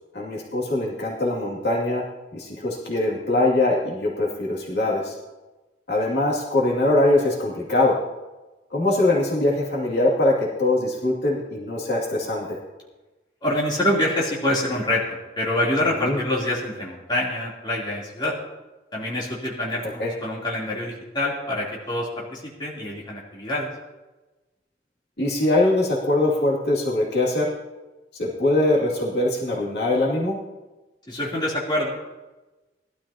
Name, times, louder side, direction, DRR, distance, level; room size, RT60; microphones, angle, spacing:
voice 1, 0.1-2.0 2.3-5.1 5.9-8.0 8.7-12.5 16.0-16.2 20.0-20.1 25.2-27.5 28.2-30.4, left 2 dB, 65° left, -4 dB, 2.4 m, -22 dB
voice 2, 13.4-18.3 18.9-23.7 31.1-31.9, left 1 dB, 25° left, -5 dB, 3.2 m, -26 dB
19.5 x 12.5 x 2.9 m, 1.1 s
head